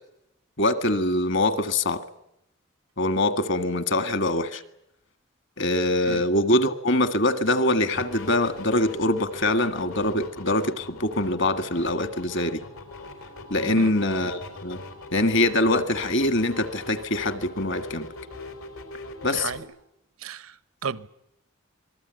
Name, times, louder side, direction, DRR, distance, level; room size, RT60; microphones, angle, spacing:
voice 1, 0.6-2.0 3.0-4.6 5.6-12.6 13.5-14.8 15.1-18.1 19.2-19.5, left 1 dB, 60° left, 1.8 m, -24 dB
sound 1, 7.9-19.6, left 2 dB, 85° left, 4.6 m, -41 dB
voice 2, 19.2-19.7 20.2-21.1, right 5 dB, 85° right, 1.0 m, -34 dB
26.0 x 20.5 x 9.2 m
head